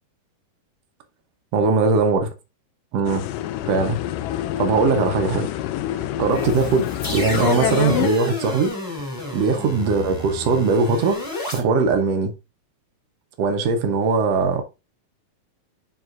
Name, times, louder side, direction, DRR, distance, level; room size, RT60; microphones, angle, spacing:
voice 1, 1.5-2.3 2.9-3.2 3.7-4.0 4.6-5.5 5.9-8.8 9.3-11.2 11.5-12.3 13.4-14.6, right 4 dB, 70° right, 1.6 m, -20 dB
sound 1, 3.1-8.1, left 12 dB, 85° left, 2.2 m, -27 dB
sound 2, 6.3-11.6, left 2 dB, 10° left, 1.5 m, -31 dB
9.2 x 4.1 x 2.5 m
omnidirectional pair, 3.9 m